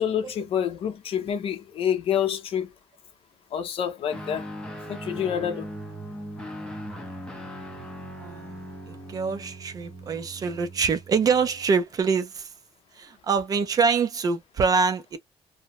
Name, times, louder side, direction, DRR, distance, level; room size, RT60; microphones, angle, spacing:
voice 1, 0.0-2.7 3.5-4.4 4.9-5.7, left 9 dB, 55° left, 0.6 m, -27 dB
Guitar, 4.1-11.8, equal, 10° left, 0.6 m, -39 dB
voice 2, 8.9-12.4 13.0-15.2, right 5 dB, 35° right, 0.4 m, -25 dB
2.7 x 2.1 x 2.8 m
cardioid pair, 180°, 11 cm